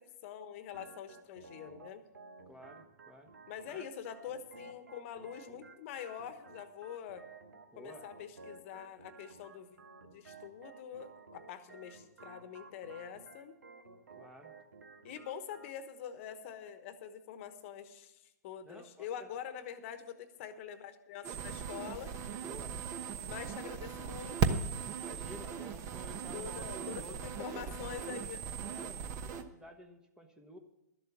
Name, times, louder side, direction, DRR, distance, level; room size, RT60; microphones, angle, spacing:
voice 1, 0.0-2.0 3.5-7.2 7.8-9.8 10.1-13.6 15.0-22.1 23.2-24.7 26.3-28.4, left 9 dB, 45° left, 11 dB, 1.1 m, -45 dB
Organ, 0.7-15.7, right 3 dB, 80° right, 1.2 m, -55 dB
voice 2, 2.5-3.3 3.7-3.9 7.7-8.1 14.2-14.6 18.6-19.3 22.4-22.8 23.1-23.3 25.0-28.2 28.5-30.6, equal, 5° right, 5 dB, 1.1 m, -52 dB
sound 1, 21.2-29.4, right 6 dB, 30° right, 1.0 m, -38 dB
12.5 x 7.7 x 7.1 m, 0.91 s
hypercardioid pair, 120°, 9 cm